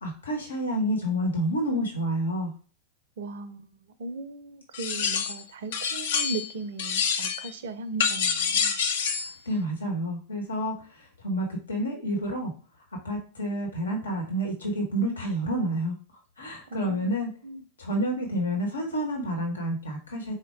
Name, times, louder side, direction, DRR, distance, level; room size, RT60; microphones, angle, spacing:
voice 1, 0.0-2.5 9.2-12.5 13.0-15.9 16.4-17.3 17.8-20.3, equal, 75° left, 1.0 m, -29 dB
voice 2, 3.2-8.7 16.7-17.1 17.4-17.6, right 3 dB, 60° right, 0.5 m, -37 dB
sound 1, 4.7-5.4 5.7-6.5 6.8-7.5 8.0-9.3, left 6 dB, 60° left, 0.5 m, -27 dB
4.5 x 2.1 x 4.6 m
figure-of-eight pair, 90°, 0 cm